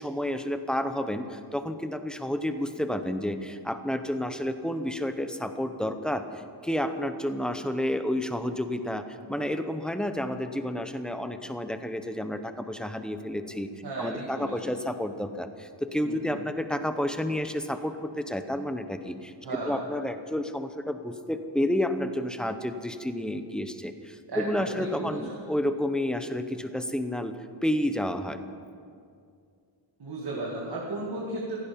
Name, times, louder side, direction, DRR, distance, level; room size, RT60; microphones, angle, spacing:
voice 1, 0.0-13.7 14.0-19.3 19.6-28.4, left 1 dB, ahead, 8 dB, 0.7 m, -30 dB
voice 2, 13.8-14.8 16.0-16.4 19.4-19.8 24.3-25.2 30.0-31.6, right 2 dB, 60° right, -4 dB, 2.3 m, -35 dB
16.0 x 16.0 x 5.3 m, 2.3 s
wide cardioid pair, 175°, 44 cm